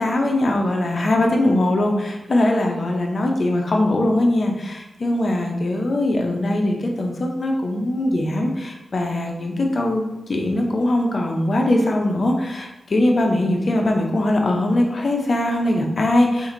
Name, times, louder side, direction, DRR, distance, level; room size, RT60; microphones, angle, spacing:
voice 1, 0.0-16.5, left 1 dB, 60° left, 1 dB, 0.6 m, -21 dB
2.9 x 2.6 x 3.8 m, 0.96 s
cardioid pair, 50°, 0 cm